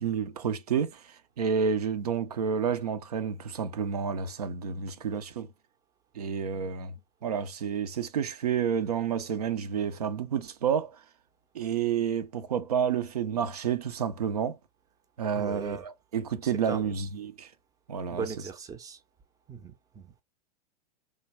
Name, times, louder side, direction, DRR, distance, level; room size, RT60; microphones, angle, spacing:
voice 1, 0.0-1.0 1.4-5.5 6.2-6.9 7.2-11.0 11.5-14.6 15.2-17.5 17.9-18.2, right 7 dB, 70° right, 0.5 m, -30 dB
voice 2, 15.3-15.8 16.4-17.0 18.1-19.0 19.5-20.1, right 6 dB, 15° right, 0.6 m, -38 dB
3.2 x 2.2 x 3.2 m
figure-of-eight pair, 95°, 21 cm